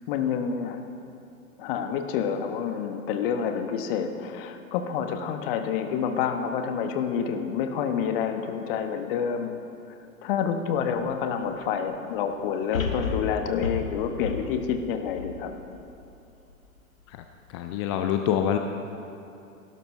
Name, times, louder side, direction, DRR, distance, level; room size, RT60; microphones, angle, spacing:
voice 1, 0.1-0.9 1.6-9.5 9.9-10.0 10.2-15.5, left 7 dB, 40° left, 6 dB, 1.2 m, -28 dB
sound 1, 11.0-11.1 12.7-16.0 16.5-16.6, left 4 dB, 75° left, 1.6 m, -32 dB
voice 2, 17.5-18.6, left 9 dB, 25° left, 5 dB, 0.4 m, -26 dB
17.5 x 12.5 x 3.2 m, 2.7 s
figure-of-eight pair, 95°, 41 cm